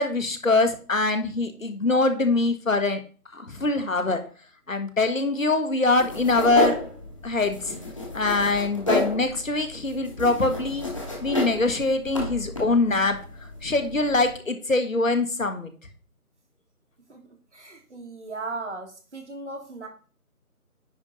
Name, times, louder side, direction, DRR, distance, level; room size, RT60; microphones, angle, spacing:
voice 1, 0.0-3.0 3.3-4.2 4.7-6.8 7.2-7.8 8.1-10.9 11.2-13.2 13.6-15.7, left 3 dB, 60° left, 7 dB, 1.4 m, -23 dB
sound 1, 6.0-14.3, left 1 dB, 20° left, 1.2 m, -32 dB
voice 2, 17.5-19.9, right 3 dB, 50° right, 3 dB, 1.9 m, -37 dB
9.8 x 3.6 x 5.3 m, 0.39 s
figure-of-eight pair, 165°, 45 cm